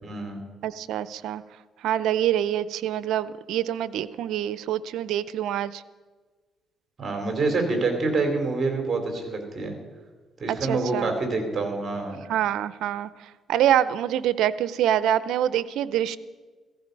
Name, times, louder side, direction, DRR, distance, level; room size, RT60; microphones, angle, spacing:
voice 1, 0.0-0.4 7.0-9.8 10.4-12.3, right 3 dB, 40° right, 4 dB, 3.8 m, -27 dB
voice 2, 0.6-1.4 1.8-5.8 10.5-11.2 12.3-16.2, right 11 dB, 85° right, 16 dB, 0.6 m, -25 dB
16.0 x 15.0 x 5.4 m, 1.4 s
cardioid pair, 90°, 0 cm